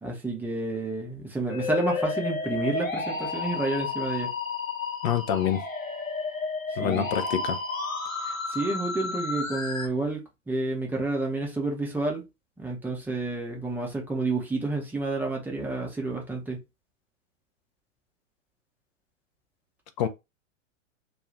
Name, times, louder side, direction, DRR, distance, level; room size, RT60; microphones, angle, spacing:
voice 1, 0.0-4.3 6.8-7.1 8.2-12.2 12.6-16.6, right 2 dB, 5° right, 0.7 m, -30 dB
Musical instrument, 1.5-9.9, left 4 dB, 90° left, 0.7 m, -31 dB
voice 2, 5.0-5.6 6.8-7.6 20.0-20.1, left 9 dB, 35° left, 0.4 m, -26 dB
2.5 x 2.3 x 3.1 m
figure-of-eight pair, 100°, 39 cm